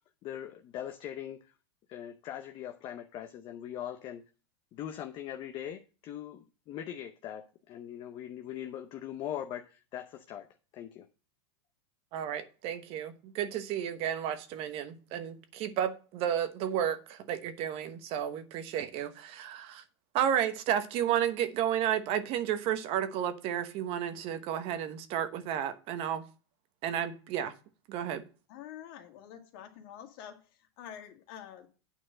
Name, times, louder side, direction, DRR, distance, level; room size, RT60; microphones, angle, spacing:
voice 1, 0.2-1.5 1.9-4.2 4.7-10.5 10.7-11.1, left 10 dB, 35° left, 0.7 m, -41 dB
voice 2, 12.1-19.8 20.1-26.2 26.8-27.5 27.9-28.3, right 10 dB, 45° right, 1.0 m, -32 dB
voice 3, 28.5-30.4 30.8-31.7, left 9 dB, 55° left, 2.0 m, -47 dB
9.1 x 4.4 x 7.4 m
supercardioid pair, 140°, 14 cm